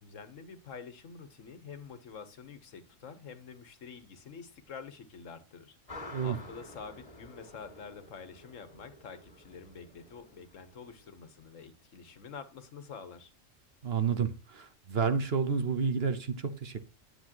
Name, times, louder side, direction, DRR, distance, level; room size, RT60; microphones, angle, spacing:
voice 1, 0.0-13.3, left 5 dB, 80° left, 1.5 m, -47 dB
sound 1, 5.9-11.2, left 2 dB, 25° left, 2.2 m, -50 dB
voice 2, 13.8-16.8, right 6 dB, 55° right, 1.2 m, -30 dB
10.0 x 7.6 x 3.0 m
omnidirectional pair, 1.3 m